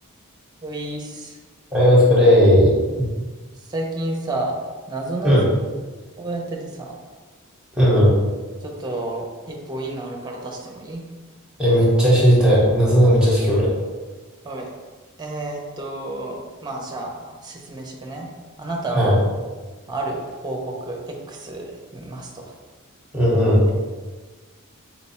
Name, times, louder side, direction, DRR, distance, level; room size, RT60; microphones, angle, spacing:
voice 1, 0.6-1.4 3.7-4.5 4.9-5.4 6.2-6.9 8.6-11.0 14.4-14.7 15.2-18.3 18.6-19.1 19.9-22.5, right 2 dB, 20° right, 0 dB, 0.6 m, -30 dB
voice 2, 1.7-3.1 5.2-5.4 7.7-8.1 11.6-13.7 18.9-19.2 23.1-23.6, equal, 5° right, -7 dB, 1.0 m, -15 dB
4.3 x 2.2 x 4.1 m, 1.3 s
head